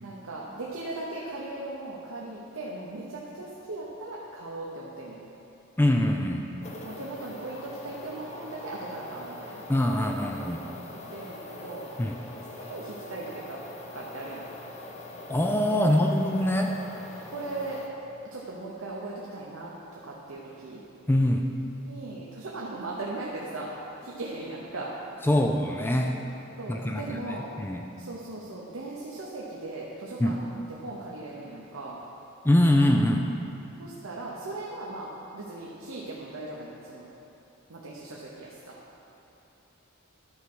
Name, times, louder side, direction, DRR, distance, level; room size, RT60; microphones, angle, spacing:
voice 1, 0.0-5.2 6.8-9.6 10.9-11.9 12.5-13.6 13.9-14.5 17.3-17.8 18.3-20.8 21.9-25.0 26.6-27.5 28.0-32.0 33.8-37.1 37.7-38.8, right 2 dB, 80° right, -4 dB, 0.9 m, -38 dB
voice 2, 5.8-6.4 9.7-10.6 12.0-12.1 15.3-16.8 21.1-21.5 25.2-26.2 26.7-27.2 27.6-27.8 30.2-30.4 32.4-33.3, left 1 dB, 10° left, 2 dB, 0.4 m, -23 dB
sound 1, 6.6-17.9, left 2 dB, 35° left, 0.8 m, -43 dB
11.0 x 4.8 x 6.1 m, 3.0 s
head